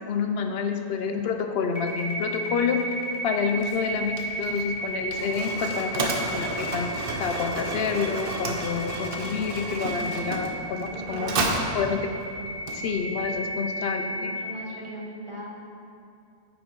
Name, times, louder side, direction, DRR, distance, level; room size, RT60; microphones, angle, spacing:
voice 1, 0.1-2.9 3.2-11.3 11.7-12.1 12.7-14.3, left 6 dB, 70° left, 6 dB, 0.8 m, -28 dB
sound 1, 1.8-14.5, equal, 35° left, 1.6 m, -34 dB
Mechanisms, 3.6-13.3, right 2 dB, 60° right, 1.0 m, -32 dB
voice 2, 10.9-11.8 14.2-15.5, right 1 dB, 30° right, -3 dB, 1.1 m, -39 dB
9.1 x 5.2 x 4.6 m, 2.5 s
omnidirectional pair, 1.1 m